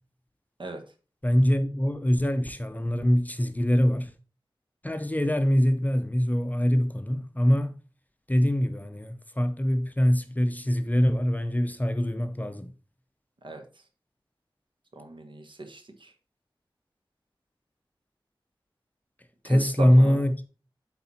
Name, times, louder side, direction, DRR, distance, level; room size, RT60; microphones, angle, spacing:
voice 1, 1.2-4.1 4.8-7.8 8.3-12.7 19.4-20.5, equal, 20° left, 0.7 m, -23 dB
voice 2, 14.9-16.1 19.4-20.2, right 2 dB, 60° right, 1.4 m, -38 dB
8.4 x 4.0 x 4.2 m
wide cardioid pair, 80°, 9 cm